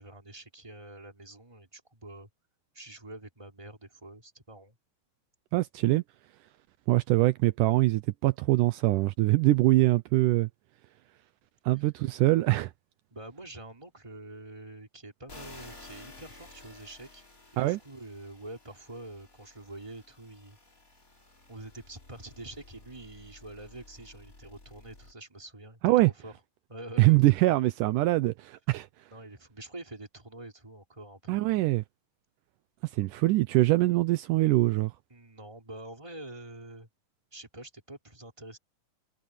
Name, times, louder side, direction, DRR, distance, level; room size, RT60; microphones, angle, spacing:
voice 1, 0.0-2.3 2.7-4.8 11.7-11.8 13.1-17.2 17.5-20.6 21.5-26.3 26.7-27.2 29.1-31.6 35.1-36.9 37.3-38.6, right 2 dB, 10° right, 3.1 m, -46 dB
voice 2, 5.5-6.0 6.9-10.5 11.7-12.7 17.6-17.8 25.8-26.1 27.0-28.9 31.3-31.8 32.9-34.9, right 18 dB, 85° right, 1.8 m, -23 dB
sound 1, 15.3-25.1, left 2 dB, 20° left, 4.1 m, -53 dB
omnidirectional pair, 4.5 m